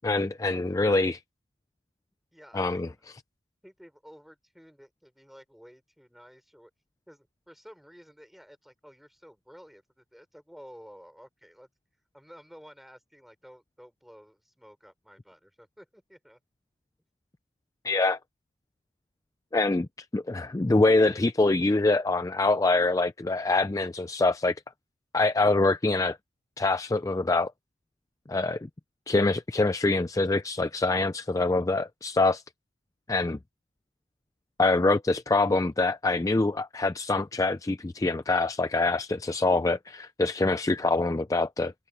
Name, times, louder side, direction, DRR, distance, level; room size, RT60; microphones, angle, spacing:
voice 1, 0.0-1.2 2.5-2.9 17.8-18.2 19.5-24.5 25.1-26.2 26.6-27.5 28.3-28.7 29.1-32.4 33.1-33.4 34.6-41.7, left 2 dB, 20° left, 0.4 m, -25 dB
voice 2, 2.3-2.8 3.6-6.7 7.1-11.7 12.1-16.4, equal, ahead, 5.4 m, -52 dB
head